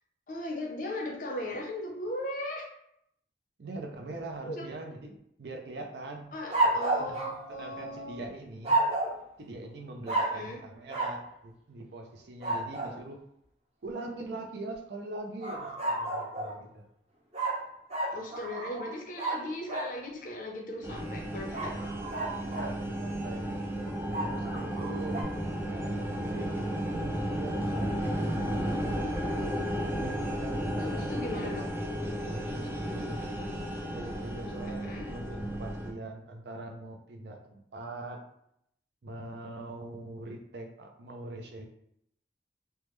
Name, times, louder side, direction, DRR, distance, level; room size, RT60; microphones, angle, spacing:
voice 1, 0.3-2.7 4.5-4.7 6.3-8.3 10.2-10.6 18.1-21.7 30.8-31.7 34.6-35.1, left 1 dB, 45° left, 1 dB, 0.6 m, -38 dB
voice 2, 3.6-6.3 6.6-8.8 9.4-13.2 13.8-16.8 22.4-23.6 24.3-25.3 25.6-29.2 29.8-31.8 32.2-33.2 33.8-38.2 39.0-41.7, right 2 dB, 70° right, 3 dB, 0.5 m, -42 dB
sound 1, 6.5-8.1 8.6-9.2 10.1-10.5 10.9-11.2 12.4-13.0 15.4-16.6 17.3-19.9 21.5-22.8 24.1-25.2, right 2 dB, 35° right, 0.7 m, -31 dB
sound 2, 20.8-35.9, equal, 10° right, 0.3 m, -33 dB
3.3 x 2.0 x 3.1 m, 0.74 s
head